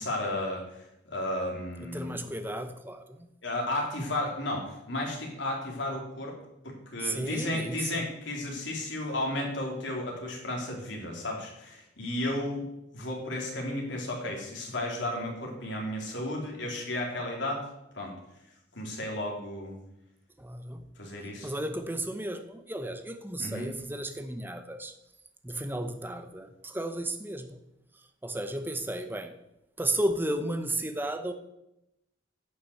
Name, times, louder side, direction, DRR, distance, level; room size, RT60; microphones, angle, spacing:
voice 1, 0.0-2.2 3.4-6.4 6.6-12.7 12.9-17.7 17.9-18.1 18.8-19.8 21.0-21.5 23.4-23.7, left 1 dB, 70° left, 0 dB, 3.3 m, -33 dB
voice 2, 1.9-3.3 7.0-8.0 20.4-20.8 21.4-24.9 25.4-27.6 28.2-29.3 29.8-31.3, right 1 dB, 10° right, 8 dB, 0.9 m, -33 dB
11.5 x 5.8 x 7.9 m, 0.87 s
head